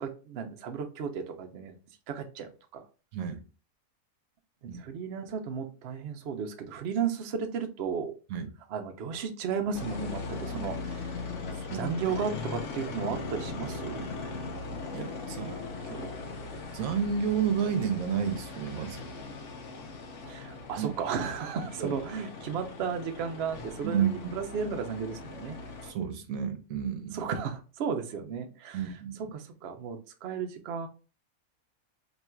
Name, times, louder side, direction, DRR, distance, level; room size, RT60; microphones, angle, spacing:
voice 1, 0.0-1.8 2.1-2.8 4.6-8.1 8.7-11.2 11.7-14.1 20.3-25.6 27.1-28.9 29.2-30.9, right 6 dB, 60° right, 0.7 m, -34 dB
sound 1, 9.7-25.9, left 3 dB, 60° left, 1.0 m, -39 dB
voice 2, 14.9-16.1 16.7-19.0 20.8-20.9 21.8-22.0 23.8-24.3 25.8-27.2 28.7-29.3, right 7 dB, 75° right, 1.1 m, -31 dB
3.0 x 2.4 x 4.2 m
omnidirectional pair, 1.5 m